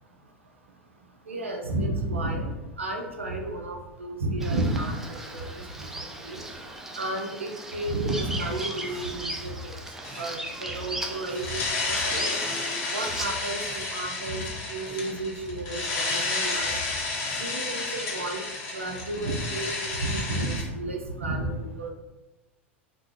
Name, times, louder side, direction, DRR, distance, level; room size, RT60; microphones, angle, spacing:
voice 1, 1.3-2.5 2.8-5.4 5.8-5.9 6.2-6.4 7.0-9.3 9.6-9.7 10.2-10.3 10.6-11.6 11.9-12.4 12.9-14.4 14.7-16.7 17.4-18.4 18.7-21.9, right 2 dB, 80° right, 2 dB, 0.5 m, -31 dB
Bird vocalization bird call bird song, 4.4-13.3, right 1 dB, 5° right, 0.4 m, -37 dB
sound 1, 8.3-9.2 9.5-10.4 10.7-11.6 11.9-12.8 13.1-14.0 14.3-15.2 15.5-16.4 16.7-17.6, left 2 dB, 20° right, 0.8 m, -44 dB
sound 2, 10.0-10.5 11.3-20.6, left 3 dB, 40° left, 0.7 m, -31 dB
2.5 x 2.0 x 3.5 m, 1.0 s
figure-of-eight pair, 90°, 7 cm